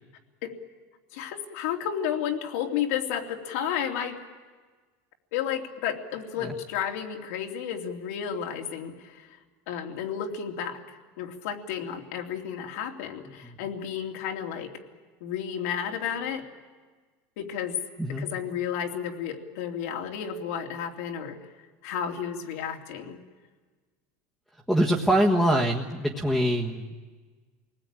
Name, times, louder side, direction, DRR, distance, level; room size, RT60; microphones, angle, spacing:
voice 1, 1.1-4.2 5.3-9.4 9.7-14.7 15.2-16.5 17.4-17.8 18.2-21.4 21.8-23.2, left 8 dB, 80° left, 3 dB, 3.0 m, -32 dB
voice 2, 24.7-26.9, right 1 dB, ahead, -4 dB, 1.5 m, -24 dB
28.0 x 19.5 x 9.0 m, 1.4 s
supercardioid pair, 155°, 8 cm